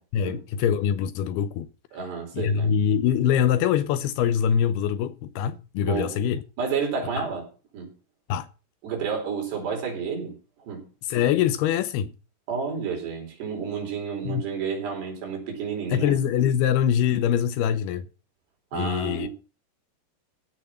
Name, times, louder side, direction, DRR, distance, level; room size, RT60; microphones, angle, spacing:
voice 1, 0.1-1.7 2.3-6.4 7.2-7.3 8.3-8.5 11.1-12.1 14.3-14.4 15.9-18.1 18.7-19.3, left 9 dB, 75° left, 2.6 m, -24 dB
voice 2, 1.9-2.7 5.9-6.2 6.6-7.5 7.7-7.9 8.8-10.3 10.7-10.8 12.5-16.2 18.7-19.3, right 6 dB, 75° right, 6.5 m, -30 dB
16.0 x 6.3 x 5.8 m
omnidirectional pair, 4.9 m